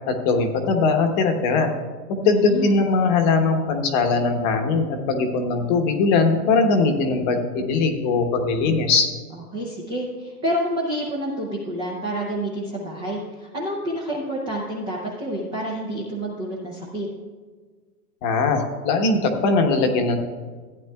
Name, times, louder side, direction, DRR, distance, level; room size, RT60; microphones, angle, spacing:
voice 1, 0.1-1.7 2.1-9.1 18.2-20.2, left 4 dB, 30° left, 5 dB, 1.0 m, -20 dB
voice 2, 2.2-2.7 9.3-17.1, right 1 dB, 10° right, -4 dB, 0.5 m, -28 dB
15.0 x 9.5 x 2.3 m, 1.5 s
hypercardioid pair, 150°, 47 cm